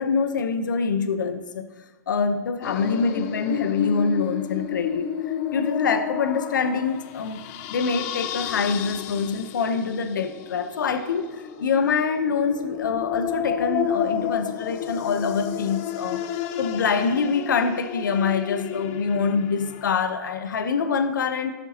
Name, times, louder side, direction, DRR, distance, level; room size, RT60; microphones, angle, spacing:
voice 1, 0.0-1.7 2.1-5.1 5.5-7.4 7.7-16.2 16.6-21.5, left 5 dB, 85° left, 8 dB, 0.8 m, -25 dB
sound 1, 2.6-19.9, left 9 dB, 45° left, 0.6 m, -31 dB
16.0 x 6.8 x 2.9 m, 1.3 s
hypercardioid pair, 120°, 10 cm